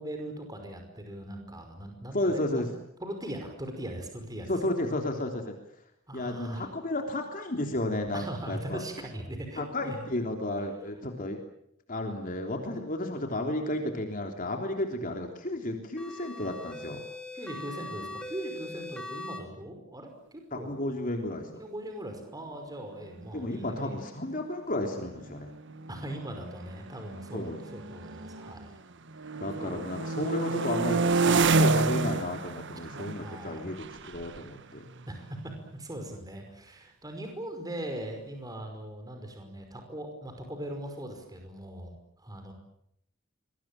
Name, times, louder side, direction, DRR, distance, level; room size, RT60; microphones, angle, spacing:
voice 1, 0.0-2.7 3.0-4.5 6.1-6.7 8.1-10.0 17.3-20.7 21.6-23.9 25.9-28.7 29.6-29.8 33.2-33.7 35.1-42.5, right 1 dB, 20° right, 4 dB, 5.4 m, -40 dB
voice 2, 2.1-2.7 4.5-5.6 6.1-8.8 9.6-11.4 11.9-17.0 20.5-21.5 23.3-25.5 27.3-27.6 29.4-34.9, left 1 dB, 40° left, 3 dB, 3.4 m, -32 dB
sound 1, 16.0-19.4, left 2 dB, 5° left, 3.9 m, -41 dB
sound 2, 23.4-23.5 23.7-24.1 24.8-28.7 29.1-35.7, right 3 dB, 60° right, 1.4 m, -30 dB
26.0 x 23.0 x 9.0 m, 0.74 s
head